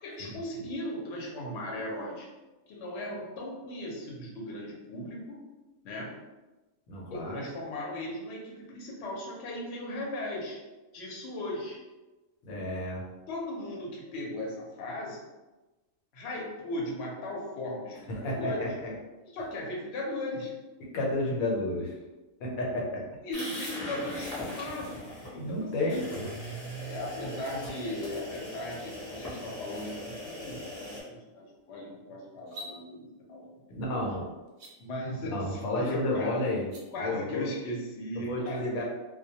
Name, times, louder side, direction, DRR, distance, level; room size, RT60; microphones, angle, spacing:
voice 1, 0.0-2.3 2.7-5.4 5.8-6.2 7.1-10.6 10.9-11.8 13.3-15.2 16.1-18.7 19.3-20.5 23.2-26.0 26.7-33.5 33.9-34.0 34.8-36.4 36.9-38.8, left 1 dB, 60° left, -3 dB, 0.8 m, -37 dB
voice 2, 6.9-7.4 12.4-13.0 18.2-18.9 20.9-21.9 22.4-23.0 25.3-26.3 33.7-34.2 35.2-37.5 38.2-38.8, left 1 dB, 85° left, -2 dB, 1.1 m, -31 dB
sound 1, 23.3-25.3 25.9-31.0, equal, 20° left, 0.6 m, -40 dB
sound 2, 32.4-32.7 34.5-34.7 36.6-36.8, equal, 85° right, 1.0 m, -43 dB
2.2 x 2.2 x 2.7 m, 1.1 s
omnidirectional pair, 1.4 m